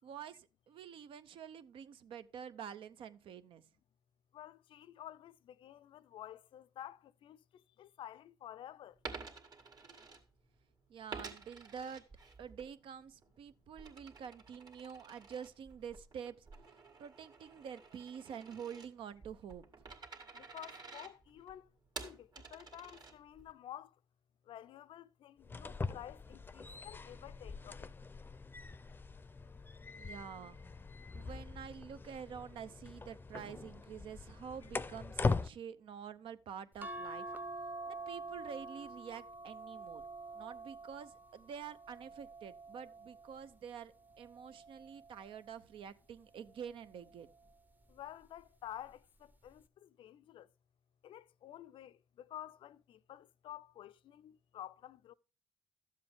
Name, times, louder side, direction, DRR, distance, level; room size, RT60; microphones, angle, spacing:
voice 1, 0.0-3.6 10.9-12.0 12.4-16.5 17.0-19.6 30.0-30.6 31.1-37.3 37.9-40.0 40.3-47.3, right 7 dB, 75° right, 0.7 m, -48 dB
voice 2, 4.3-7.4 7.8-8.9 20.3-21.7 22.0-23.9 24.5-27.9 47.9-50.5 51.0-55.1, left 11 dB, 75° left, 0.4 m, -51 dB
Coin (dropping), 8.9-10.6 11.1-12.7 13.1-23.5, right 4 dB, 50° right, 2.0 m, -51 dB
sound 1, 25.4-35.5, left 4 dB, 20° left, 0.5 m, -41 dB
sound 2, 36.8-43.4 44.1-45.5 46.7-47.1 47.5-47.6, right 2 dB, 20° right, 0.8 m, -47 dB
12.0 x 7.5 x 3.5 m
cardioid pair, 90°, 9 cm